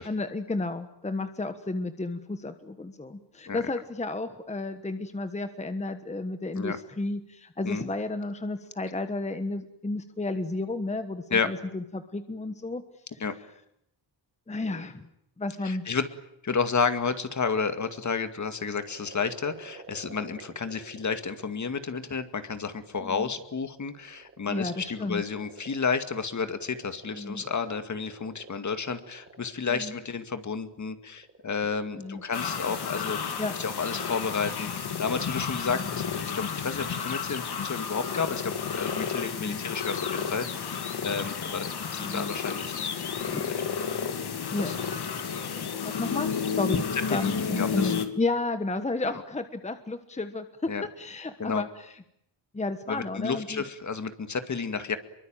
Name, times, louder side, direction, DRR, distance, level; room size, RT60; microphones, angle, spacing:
voice 1, 0.0-12.8 13.1-13.2 14.5-15.1 15.4-15.9 23.0-23.3 24.5-25.2 27.1-27.5 29.7-30.0 31.9-32.2 33.4-33.5 35.7-35.9 39.4-39.6 42.0-42.3 43.3-43.5 44.5-44.7 45.8-46.3 46.6-46.8 47.1-51.9 52.5-53.6, left 2 dB, 15° left, 9 dB, 1.3 m, -32 dB
voice 2, 15.6-16.1 16.4-33.3 33.6-40.5 40.8-42.7 44.6-44.7 46.9-47.9 50.7-50.8 51.4-51.6 52.9-55.0, left 5 dB, 45° left, 9 dB, 2.2 m, -31 dB
sound 1, 18.0-21.7 22.5-35.2, right 3 dB, 30° right, 2.9 m, -50 dB
sound 2, 32.3-48.1, left 6 dB, 65° left, 2.5 m, -32 dB
26.5 x 23.5 x 9.1 m, 0.76 s
wide cardioid pair, 140°, 42 cm